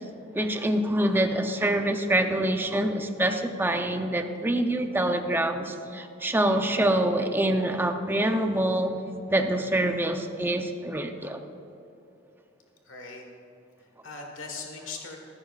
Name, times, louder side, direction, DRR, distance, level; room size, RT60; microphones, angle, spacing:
voice 1, 0.3-9.0 9.3-11.4, right 1 dB, 10° right, 6 dB, 0.6 m, -25 dB
voice 2, 12.8-13.2 13.8-15.2, left 4 dB, 75° left, 1 dB, 1.5 m, -40 dB
15.0 x 13.5 x 2.4 m, 2.8 s
head